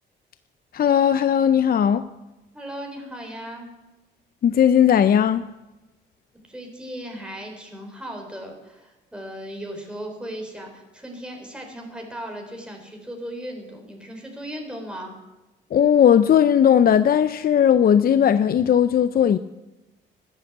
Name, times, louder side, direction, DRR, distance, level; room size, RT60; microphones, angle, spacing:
voice 1, 0.7-2.0 4.4-5.4 15.7-19.4, left 9 dB, 50° left, 0.6 m, -17 dB
voice 2, 2.5-3.7 6.5-15.2, equal, 5° right, 3.9 m, -37 dB
14.5 x 10.0 x 8.1 m
cardioid pair, 90°, 20 cm